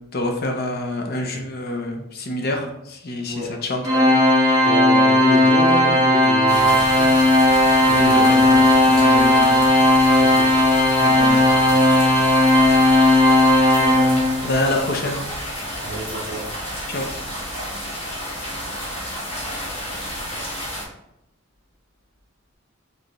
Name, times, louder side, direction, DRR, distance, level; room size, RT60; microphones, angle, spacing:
voice 1, 0.1-3.8 7.9-8.6 8.9-9.6 11.0-11.4 14.4-15.2 16.9-17.0, left 1 dB, 50° left, 3 dB, 0.6 m, -26 dB
Organ, 3.8-14.6, left 1 dB, 20° right, 0.9 m, -16 dB
voice 2, 4.6-7.2 7.8-8.4 10.2-10.5 15.8-16.4, right 1 dB, 45° right, -6 dB, 1.8 m, -29 dB
sound 1, 6.5-20.8, equal, 30° left, 1.2 m, -31 dB
5.1 x 3.4 x 3.0 m, 0.84 s
head